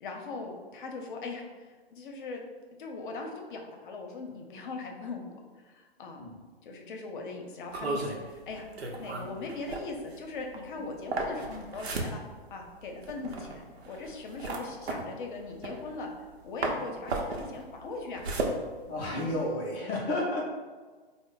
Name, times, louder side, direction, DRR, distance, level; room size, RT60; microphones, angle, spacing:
voice 1, 0.0-2.4 2.8-6.2 6.6-8.7 8.9-12.2 12.5-16.1 16.4-18.2, left 3 dB, 55° left, 2 dB, 0.7 m, -40 dB
sound 1, 7.7-16.3 16.6-19.5, right 2 dB, 85° right, 0.7 m, -35 dB
voice 2, 18.9-20.4, left 1 dB, 15° left, -3 dB, 0.4 m, -31 dB
3.3 x 2.0 x 3.8 m, 1.4 s
hypercardioid pair, 135°, 31 cm